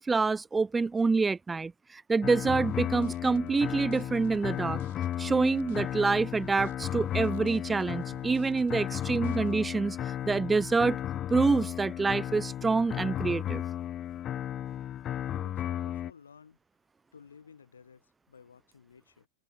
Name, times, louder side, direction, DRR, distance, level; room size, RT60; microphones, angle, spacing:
voice 1, 0.0-4.8 5.2-11.0 11.3-13.6, right 4 dB, 10° right, 0.4 m, -27 dB
sound 1, 2.2-16.1, left 11 dB, 30° left, 1.2 m, -34 dB
sound 2, 2.6-9.7, right 19 dB, 50° right, 2.5 m, -55 dB
voice 2, 15.2-16.6 17.1-19.3, left 6 dB, 70° left, 4.4 m, -54 dB
figure-of-eight pair, 90°, 0 cm